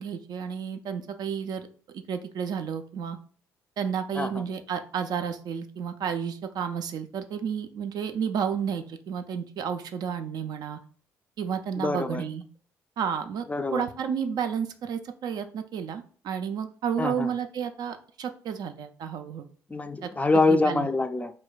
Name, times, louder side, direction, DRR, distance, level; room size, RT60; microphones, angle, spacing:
voice 1, 0.0-1.7 2.1-3.2 3.8-10.8 11.4-12.4 13.0-19.5 20.0-20.1 20.5-20.9, right 7 dB, 55° right, 8 dB, 0.4 m, -31 dB
voice 2, 11.8-12.2 13.5-13.8 17.0-17.3 19.7-21.3, left 3 dB, 15° left, 8 dB, 0.3 m, -25 dB
2.2 x 2.2 x 3.9 m, 0.44 s
hypercardioid pair, 45°, 8 cm